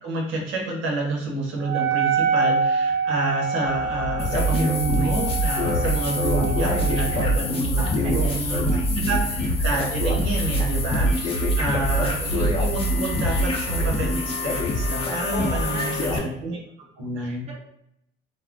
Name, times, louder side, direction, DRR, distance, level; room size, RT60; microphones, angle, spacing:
voice 1, 0.0-8.6 8.9-16.6 17.0-17.5, right 2 dB, 80° right, -1 dB, 0.9 m, -28 dB
Wind instrument woodwind instrument, 1.6-7.4, right 5 dB, 55° right, 0.5 m, -26 dB
sound 1, 3.6-14.0, right 3 dB, 85° left, 0.6 m, -26 dB
sound 2, 4.2-16.2, left 2 dB, 30° left, 0.7 m, -26 dB
voice 2, 6.6-9.4 15.1-16.4 17.2-17.6, right 2 dB, 35° right, -3 dB, 0.8 m, -37 dB
2.1 x 2.1 x 3.6 m, 0.74 s
cardioid pair, 95°, 20 cm